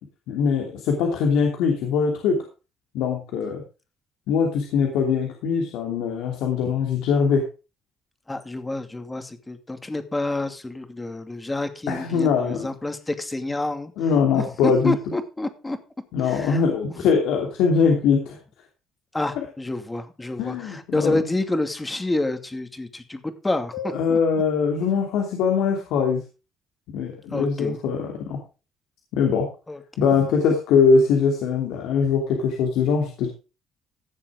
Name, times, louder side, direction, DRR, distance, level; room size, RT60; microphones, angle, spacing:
voice 1, 0.3-2.4 2.9-3.6 4.3-7.4 11.9-12.7 14.0-14.9 16.1-18.4 20.4-21.2 23.7-26.2 26.9-28.4 29.1-29.5 30.0-33.3, left 5 dB, 85° left, 2 dB, 2.9 m, -22 dB
voice 2, 8.3-13.9 14.3-15.8 16.2-16.8 19.1-24.2 27.3-27.8 29.7-29.8, left 2 dB, 15° left, 8 dB, 2.5 m, -28 dB
16.0 x 7.1 x 5.0 m, 0.32 s
cardioid pair, 90°, 0 cm